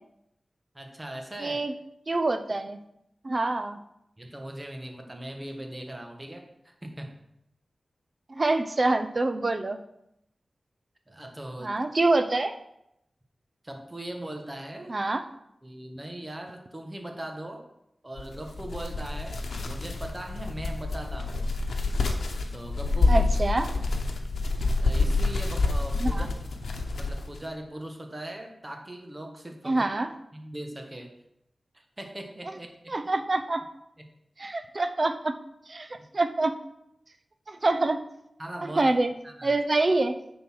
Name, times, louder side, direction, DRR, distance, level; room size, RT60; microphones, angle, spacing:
voice 1, 0.7-1.6 4.2-7.2 11.1-11.8 13.6-15.0 15.6-17.7 18.0-21.5 22.5-23.3 24.8-26.5 26.9-29.9 30.3-31.1 31.7-32.9 34.0-34.1 36.0-36.1 38.4-38.9 39.2-39.5, right 1 dB, 20° right, 4 dB, 1.4 m, -40 dB
voice 2, 1.4-1.7 2.1-2.8 3.2-3.8 8.3-9.8 11.6-12.6 14.9-15.2 23.1-23.7 26.0-26.3 29.7-30.1 32.9-33.6 34.4-35.4 35.7-36.6 37.5-38.0 38.8-39.1 39.4-40.1, right 2 dB, 45° right, 8 dB, 0.7 m, -26 dB
sound 1, 18.2-27.4, left 3 dB, 90° left, 0.9 m, -27 dB
9.4 x 4.0 x 6.2 m, 0.80 s
wide cardioid pair, 85°, 0 cm